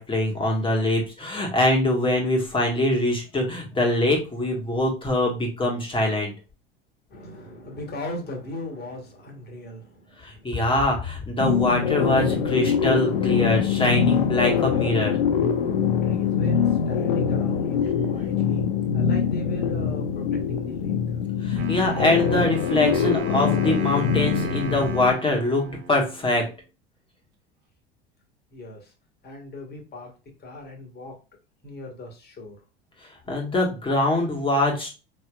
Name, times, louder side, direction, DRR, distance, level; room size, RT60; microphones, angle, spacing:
voice 1, 0.0-6.3 10.2-15.2 21.4-26.5 33.3-34.9, left 1 dB, 15° left, 0 dB, 1.6 m, -23 dB
voice 2, 7.1-10.7 15.0-21.3 28.5-28.9 29.2-30.1 30.4-31.1 31.6-32.6, left 2 dB, 35° left, 2 dB, 1.8 m, -39 dB
sound 1, 11.4-25.1, left 7 dB, 65° left, 0.7 m, -24 dB
Wind instrument woodwind instrument, 21.6-26.5, right 4 dB, 40° right, 1.0 m, -37 dB
5.4 x 3.2 x 2.4 m, 0.31 s
figure-of-eight pair, 75°, 30 cm